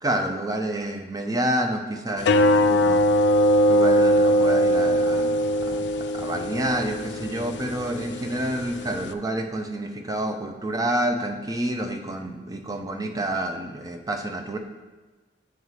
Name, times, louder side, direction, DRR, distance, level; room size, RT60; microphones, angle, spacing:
voice 1, 0.0-3.0 3.7-5.9 6.1-14.6, right 1 dB, 20° right, 5 dB, 0.5 m, -28 dB
sound 1, 2.2-9.1, equal, 70° left, 0.4 m, -21 dB
8.0 x 5.4 x 3.2 m, 1.2 s
head